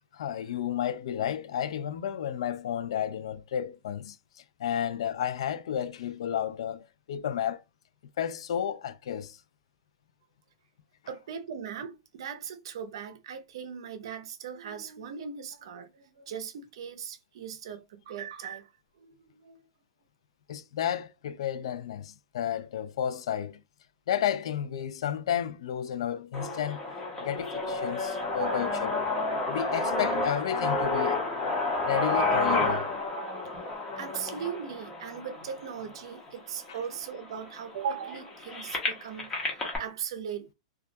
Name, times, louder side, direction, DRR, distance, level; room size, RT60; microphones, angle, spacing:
voice 1, 0.1-4.2 4.6-7.6 8.2-9.4 20.5-23.6 24.1-26.8 27.2-29.0 29.5-31.2 31.9-32.9 36.7-36.8, left 9 dB, 70° left, 0.3 m, -32 dB
voice 2, 11.1-18.7 19.0-19.6 28.4-28.7 33.1-40.5, right 7 dB, 65° right, 0.5 m, -39 dB
sound 1, 26.3-36.3 36.9-37.0 37.3-39.8, left 2 dB, 15° left, 0.7 m, -30 dB
2.3 x 2.1 x 2.6 m
hypercardioid pair, 155°, 3 cm